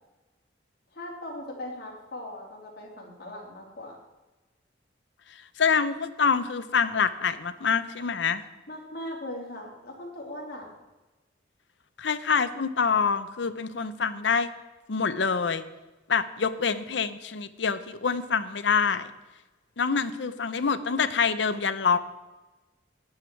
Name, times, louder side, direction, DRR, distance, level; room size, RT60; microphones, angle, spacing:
voice 1, 0.9-4.0 8.7-10.7, left 1 dB, 55° left, -2 dB, 3.3 m, -39 dB
voice 2, 5.6-8.4 12.0-14.5 14.9-15.6 16.1-19.1 19.8-22.0, left 5 dB, 70° left, 12 dB, 0.7 m, -26 dB
11.5 x 10.0 x 4.5 m, 1.1 s
head